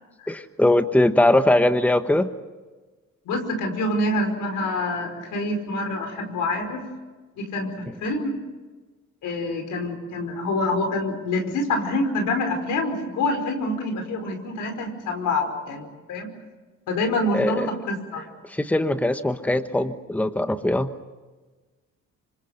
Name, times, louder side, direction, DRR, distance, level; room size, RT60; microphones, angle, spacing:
voice 1, 0.3-2.3 17.3-17.7 18.5-20.9, left 1 dB, 5° left, 9 dB, 1.2 m, -21 dB
voice 2, 3.2-6.9 7.4-8.4 9.2-16.3 16.9-18.3, left 2 dB, 85° left, 5 dB, 5.2 m, -26 dB
26.0 x 26.0 x 6.7 m, 1.3 s
cardioid pair, 90°, 30 cm